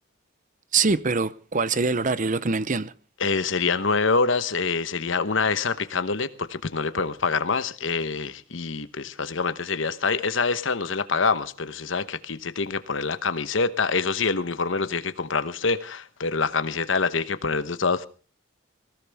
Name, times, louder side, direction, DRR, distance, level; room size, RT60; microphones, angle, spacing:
voice 1, 0.7-2.9, right 4 dB, 40° right, 0.7 m, -24 dB
voice 2, 3.2-18.1, left 4 dB, 70° left, 1.0 m, -26 dB
19.5 x 17.0 x 3.5 m
head